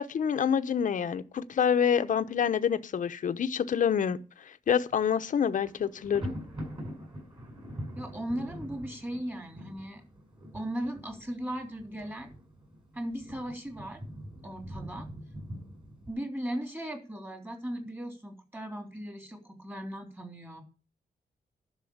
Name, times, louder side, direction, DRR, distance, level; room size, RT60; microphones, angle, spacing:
voice 1, 0.0-4.2 4.4-6.2, left 8 dB, 55° left, 0.9 m, -27 dB
Thunder, 4.7-5.0 5.3-16.1, equal, 30° right, 6.7 m, -43 dB
voice 2, 7.9-10.0 10.5-12.3 12.9-14.0 14.4-15.1 16.1-20.6, equal, 15° right, 3.4 m, -37 dB
11.5 x 6.2 x 8.6 m
wide cardioid pair, 140°, 16 cm